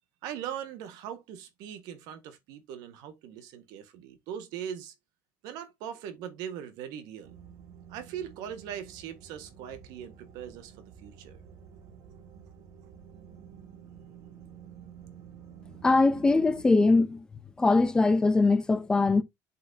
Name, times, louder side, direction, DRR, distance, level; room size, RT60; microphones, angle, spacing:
voice 1, 0.2-4.9 5.4-7.3 7.9-11.4, right 9 dB, 70° right, 1.7 m, -40 dB
sound 1, 7.2-16.6, right 8 dB, 50° right, 2.4 m, -50 dB
voice 2, 15.8-17.2 17.6-19.2, left 3 dB, 10° left, 0.6 m, -22 dB
7.4 x 6.0 x 2.8 m
cardioid pair, 180°, 7 cm